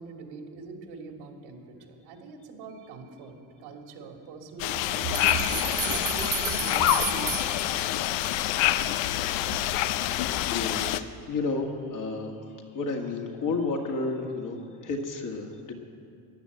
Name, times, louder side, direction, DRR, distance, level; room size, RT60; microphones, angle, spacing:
voice 1, 0.0-5.5 5.8-7.6, right 5 dB, 75° right, 2 dB, 2.6 m, -41 dB
sound 1, 4.6-11.0, left 13 dB, 85° left, 0.7 m, -27 dB
sound 2, 5.1-8.2, right 11 dB, 30° right, 1.4 m, -33 dB
voice 2, 9.8-12.3 12.7-15.7, left 3 dB, 45° left, 1 dB, 2.0 m, -32 dB
15.0 x 10.5 x 8.0 m, 2.3 s
cardioid pair, 135°, 43 cm